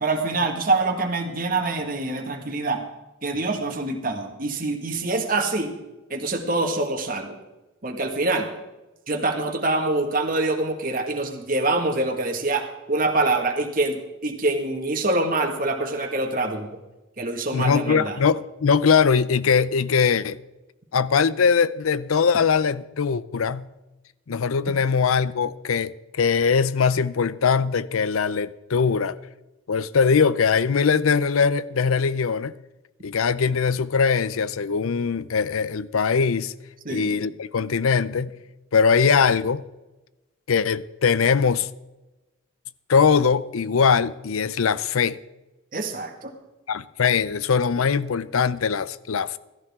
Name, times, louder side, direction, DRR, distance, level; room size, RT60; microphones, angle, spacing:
voice 1, 0.0-2.8 3.2-5.7 6.1-7.4 7.8-8.5 9.1-14.0 14.2-16.7 17.2-18.2 36.9-37.2 45.7-46.3, right 2 dB, 40° right, 1.7 m, -25 dB
voice 2, 17.5-20.4 20.9-23.7 24.3-29.1 29.7-32.5 33.0-36.5 36.9-38.3 38.7-39.6 40.5-41.7 42.9-45.2 46.7-49.4, left 6 dB, 90° left, 0.6 m, -21 dB
16.0 x 14.0 x 3.6 m
head